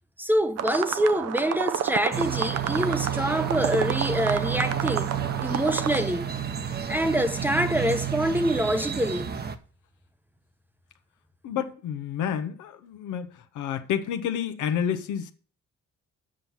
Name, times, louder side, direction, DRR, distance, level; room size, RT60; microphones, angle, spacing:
voice 1, 0.2-5.1 5.4-6.2 6.9-9.3, equal, 5° right, 0.8 m, -25 dB
sound 1, 0.6-6.0, right 9 dB, 55° right, 0.6 m, -30 dB
sound 2, 2.1-9.6, right 9 dB, 30° right, 0.9 m, -31 dB
voice 2, 11.4-13.3 13.5-15.3, left 8 dB, 85° left, 1.0 m, -29 dB
7.7 x 5.8 x 7.1 m
cardioid pair, 90°, 30 cm